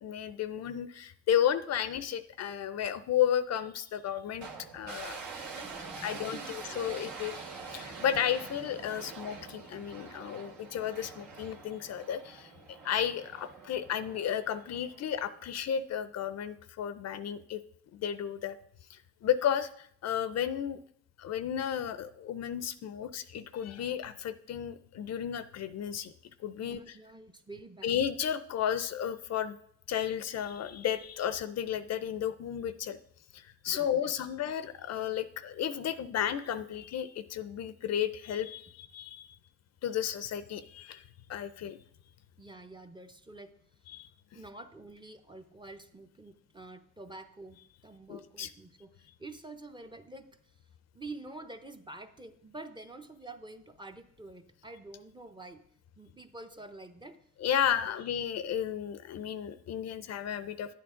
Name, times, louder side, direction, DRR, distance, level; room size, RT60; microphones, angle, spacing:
voice 1, 0.0-4.5 4.7-5.2 6.0-7.3 7.7-17.6 17.9-18.6 18.9-20.8 21.2-26.1 26.4-27.0 27.8-29.6 29.9-33.0 33.3-39.4 39.8-41.8 43.9-44.1 48.1-48.5 57.4-60.7, left 9 dB, 60° left, 13 dB, 0.6 m, -33 dB
sound 1, 4.4-15.6, right 4 dB, 70° right, 2.4 m, -45 dB
voice 2, 6.0-7.0 26.6-27.9 33.7-34.1 42.4-43.5 44.3-47.6 47.8-48.9 49.2-50.3 50.9-55.6 56.0-57.2 57.8-57.9, right 2 dB, 15° right, 7 dB, 0.7 m, -47 dB
9.9 x 8.6 x 3.7 m, 0.66 s
cardioid pair, 90°, 30 cm